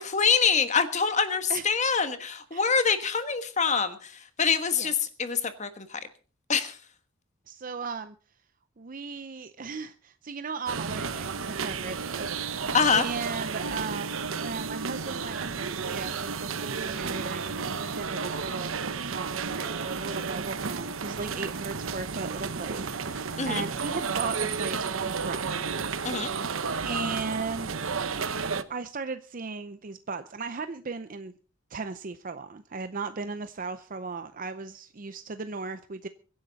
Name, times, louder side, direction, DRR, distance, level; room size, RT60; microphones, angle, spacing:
voice 1, 0.0-4.1 4.4-6.0 6.5-6.8 12.7-13.0 23.4-23.6 26.0-26.3, left 6 dB, 35° left, 10 dB, 1.4 m, -25 dB
voice 2, 7.5-8.2 8.8-25.7 26.2-26.3 26.8-27.8 28.7-31.3 31.7-36.1, right 4 dB, 40° right, 11 dB, 0.6 m, -37 dB
sound 1, 10.7-28.6, right 5 dB, 85° right, 1.0 m, -32 dB
23.5 x 10.5 x 4.0 m, 0.38 s
head